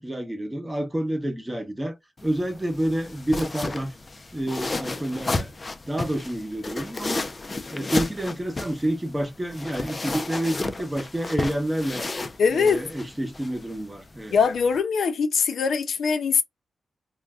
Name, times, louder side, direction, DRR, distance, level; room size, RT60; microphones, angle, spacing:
voice 1, 0.0-2.0 2.2-3.9 4.3-5.5 5.9-7.3 7.7-12.1 12.5-14.4, right 1 dB, 15° right, 0.8 m, -28 dB
sound 1, 2.2-14.8, left 2 dB, 35° left, 0.4 m, -33 dB
voice 2, 12.4-12.8 14.3-16.4, left 5 dB, 80° left, 0.6 m, -22 dB
2.5 x 2.2 x 3.4 m
cardioid pair, 80°, 0 cm